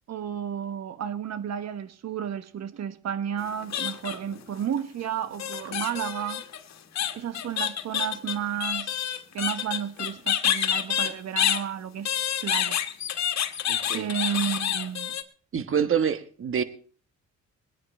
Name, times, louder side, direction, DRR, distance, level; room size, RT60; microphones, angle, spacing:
voice 1, 0.1-6.4 7.2-12.1 12.4-12.8 13.9-15.1, right 9 dB, 60° right, 1.3 m, -32 dB
sound 1, 3.4-4.4 5.4-11.6 12.1-15.2, left 10 dB, 60° left, 1.6 m, -28 dB
voice 2, 13.7-14.1 15.5-16.6, right 7 dB, 45° right, 1.4 m, -26 dB
21.5 x 9.9 x 4.3 m
cardioid pair, 90°, 30 cm